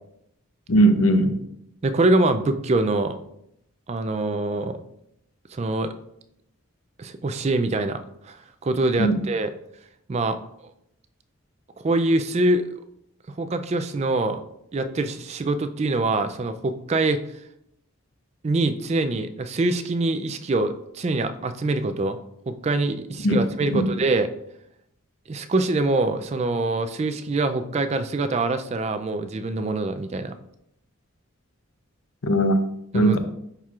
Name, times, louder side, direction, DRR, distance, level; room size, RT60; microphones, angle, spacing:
voice 1, 0.7-1.4 9.0-9.2 23.2-23.4 23.7-23.8 32.2-32.6 32.9-33.2, right 1 dB, 75° left, 8 dB, 0.7 m, -19 dB
voice 2, 1.8-3.2 3.9-4.8 5.5-5.9 7.0-8.4 8.6-9.5 10.1-10.4 11.8-12.7 13.4-14.4 14.7-17.2 18.4-22.2 22.5-24.3 25.3-30.3 32.9-33.2, right 2 dB, 30° right, 9 dB, 0.3 m, -24 dB
10.5 x 4.4 x 2.4 m, 0.77 s
head